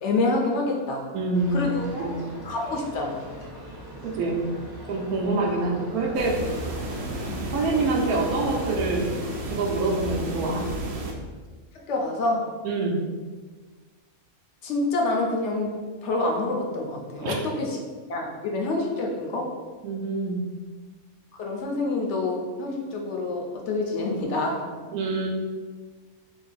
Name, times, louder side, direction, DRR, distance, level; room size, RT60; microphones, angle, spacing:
voice 1, 0.0-1.1 1.5-1.8 2.4-3.2 7.3-7.4 11.7-12.5 14.6-17.8 18.1-19.5 21.4-24.6, left 2 dB, 65° left, 0 dB, 0.8 m, -27 dB
voice 2, 1.1-1.6 2.0-2.2 4.0-4.5 4.9-6.4 7.5-9.1 9.4-10.7 12.6-13.0 17.2-17.4 19.8-20.4 24.9-25.3, right 3 dB, 90° right, 0 dB, 1.2 m, -26 dB
sound 1, 1.3-8.9, equal, 25° right, 0.5 m, -41 dB
sound 2, 6.1-11.1, right 2 dB, 60° right, 0.7 m, -32 dB
3.0 x 2.6 x 4.0 m, 1.4 s
omnidirectional pair, 1.5 m